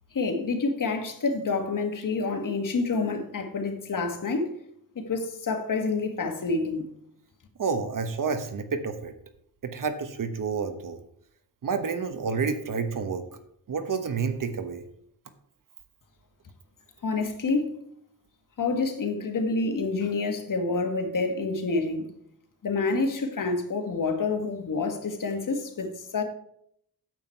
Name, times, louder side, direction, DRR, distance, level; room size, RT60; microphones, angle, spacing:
voice 1, 0.1-4.5 4.9-6.8 17.0-17.8 18.6-22.1 22.6-26.2, left 3 dB, 55° left, 1.7 m, -28 dB
voice 2, 7.6-9.1 9.6-11.0 11.6-13.2 13.7-14.8, right 5 dB, 60° right, 1.1 m, -29 dB
9.2 x 7.8 x 4.5 m
cardioid pair, 95°, 37 cm